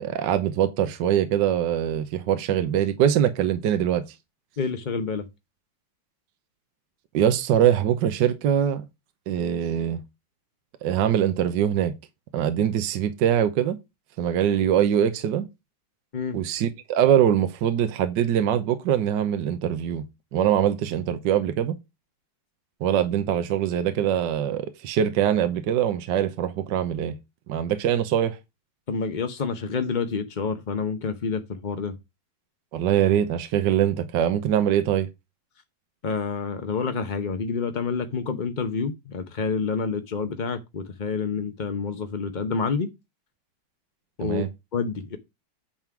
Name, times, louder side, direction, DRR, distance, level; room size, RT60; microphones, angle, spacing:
voice 1, 0.0-4.0 7.1-8.8 9.3-10.0 10.8-11.9 12.3-13.8 14.2-15.4 16.3-20.0 20.3-21.7 22.8-27.1 27.5-28.4 32.7-35.1 44.2-44.5, right 10 dB, 70° right, 1.4 m, -23 dB
voice 2, 4.6-5.3 16.1-16.4 28.9-32.0 36.0-42.9 44.2-44.4 44.7-45.2, left 5 dB, 55° left, 0.5 m, -28 dB
9.2 x 3.7 x 5.9 m
omnidirectional pair, 2.1 m